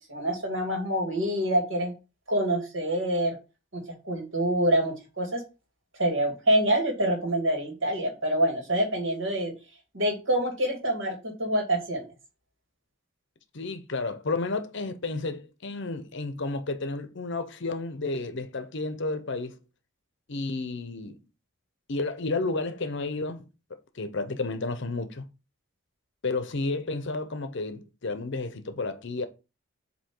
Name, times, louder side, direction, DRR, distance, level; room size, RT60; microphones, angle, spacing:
voice 1, 0.1-1.9 2.3-3.4 3.7-5.4 6.0-9.5 9.9-12.0, right 1 dB, 60° right, 2.2 m, -26 dB
voice 2, 13.5-19.6 20.3-21.2 21.9-23.4 23.9-25.3 26.2-29.3, left 3 dB, 60° left, 0.8 m, -31 dB
7.7 x 3.0 x 4.4 m
head